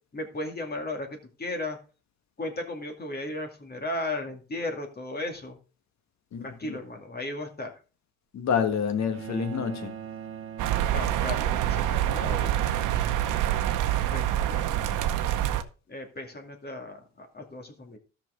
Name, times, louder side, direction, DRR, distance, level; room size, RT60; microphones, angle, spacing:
voice 1, 0.1-1.8 2.4-5.6 6.4-7.8 10.9-12.6 13.1-13.4 14.0-14.8 15.9-18.0, left 2 dB, 30° left, 2.3 m, -36 dB
voice 2, 6.3-6.8 8.3-10.0, left 7 dB, 65° left, 1.5 m, -28 dB
sound 1, 9.1-11.7, right 8 dB, 45° right, 1.2 m, -41 dB
sound 2, 10.6-15.6, right 12 dB, 90° right, 0.8 m, -26 dB
13.0 x 6.0 x 3.8 m
cardioid pair, 90°, 30 cm